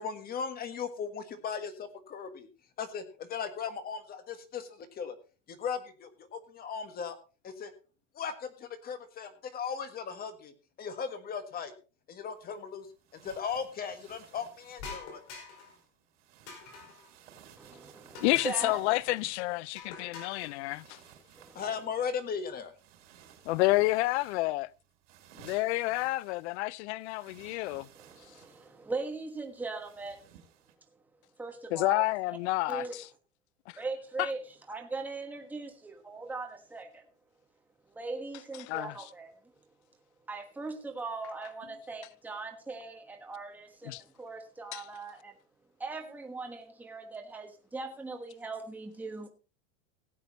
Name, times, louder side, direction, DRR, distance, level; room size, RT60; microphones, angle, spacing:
voice 1, 0.0-2.5 2.8-5.2 5.5-7.2 7.4-7.7 8.1-10.5 10.8-11.7 12.1-12.9 13.1-15.2 21.5-22.7, left 6 dB, 25° left, 1.5 m, -37 dB
sound 1, 12.3-30.7, right 9 dB, 70° right, 4.0 m, -58 dB
sound 2, 14.8-15.8 16.5-17.1 18.1-18.7 19.8-20.5, left 4 dB, 45° left, 4.9 m, -45 dB
voice 2, 17.6-18.8 21.3-21.6 27.9-30.3 31.4-32.4 32.7-33.0 33.8-37.1 37.9-39.4 40.3-45.4 45.8-49.3, right 3 dB, 5° right, 1.3 m, -40 dB
voice 3, 18.2-21.0 23.5-24.7 25.5-27.9 31.7-32.8 34.2-34.3 38.7-38.9 43.9-44.0 44.7-44.8, left 19 dB, 60° left, 0.5 m, -29 dB
17.0 x 8.3 x 4.0 m
supercardioid pair, 155°, 38 cm